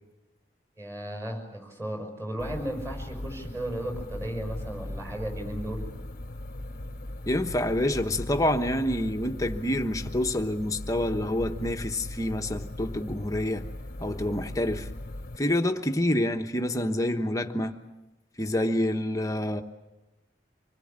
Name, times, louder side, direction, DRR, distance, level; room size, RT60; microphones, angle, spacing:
voice 1, 0.8-5.9, right 1 dB, 15° right, 5.8 m, -35 dB
sound 1, 2.4-15.4, left 1 dB, 45° left, 1.0 m, -38 dB
voice 2, 7.3-13.7 14.0-14.9 15.4-17.8 18.4-19.6, left 1 dB, 20° left, 1.1 m, -27 dB
25.5 x 20.5 x 8.8 m
head